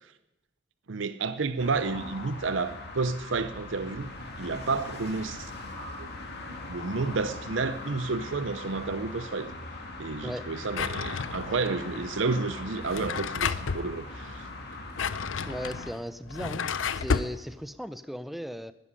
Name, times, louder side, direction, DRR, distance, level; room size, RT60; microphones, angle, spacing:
voice 1, 0.9-6.1 6.7-9.5 10.0-14.5, right 4 dB, 70° right, 11 dB, 0.6 m, -31 dB
sound 1, 1.6-15.9, left 2 dB, 60° left, 2.3 m, -40 dB
Drawer open or close, 10.7-11.7 12.7-13.9 14.7-17.4, left 5 dB, 85° left, 0.6 m, -31 dB
voice 2, 15.4-16.7 16.9-18.7, equal, ahead, 13 dB, 0.6 m, -36 dB
13.0 x 10.0 x 10.0 m, 0.99 s
head